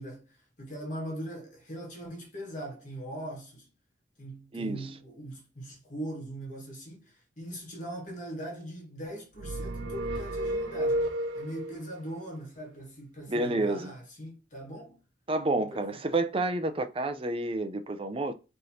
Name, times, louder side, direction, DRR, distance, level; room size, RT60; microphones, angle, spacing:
voice 1, 0.0-3.7 4.2-11.1 11.3-15.0 15.6-16.0, right 1 dB, 40° left, 1.5 m, -41 dB
sound 1, 9.4-11.8, right 1 dB, 90° right, 0.6 m, -31 dB
voice 2, 13.3-13.9 15.3-18.3, right 2 dB, 30° right, 0.5 m, -29 dB
4.4 x 3.2 x 2.7 m
head